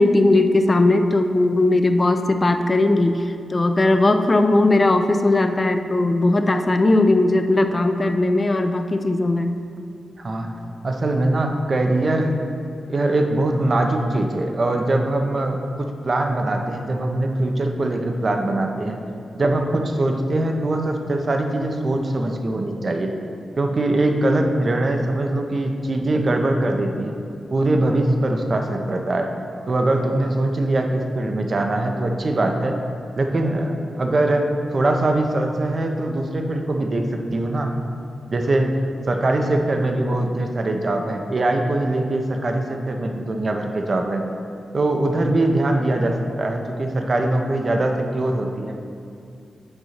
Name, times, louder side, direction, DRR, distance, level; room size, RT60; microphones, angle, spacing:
voice 1, 0.0-9.6, left 2 dB, 35° left, 7 dB, 0.4 m, -18 dB
voice 2, 10.2-10.5 10.8-12.4 12.9-19.0 19.3-23.1 23.6-27.1 27.5-29.3 29.7-32.8 33.2-37.7 38.3-38.8 39.1-44.2 44.7-48.8, right 2 dB, 50° right, 3 dB, 0.6 m, -22 dB
7.9 x 2.7 x 5.8 m, 2.5 s
cardioid pair, 60°, 0 cm